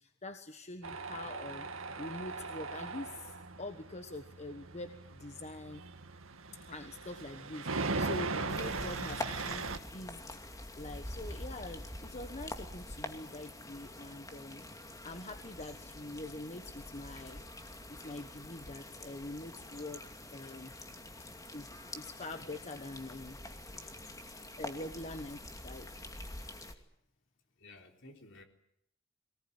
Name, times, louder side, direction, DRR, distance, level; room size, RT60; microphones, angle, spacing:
voice 1, 0.0-1.7 1.9-5.8 6.7-10.2 10.8-14.6 15.0-17.4 17.9-20.7 21.5-21.7 21.9-23.4 24.6-25.9, left 2 dB, 35° left, 8 dB, 1.3 m, -44 dB
Tools, 0.8-9.8, right 3 dB, 80° right, 1.9 m, -39 dB
sound 1, 8.5-26.7, left 1 dB, 15° left, 2.5 m, -46 dB
voice 2, 23.7-24.3 24.6-24.7 27.6-28.4, left 2 dB, 65° left, 4 dB, 4.0 m, -56 dB
23.0 x 19.5 x 9.9 m, 0.72 s
head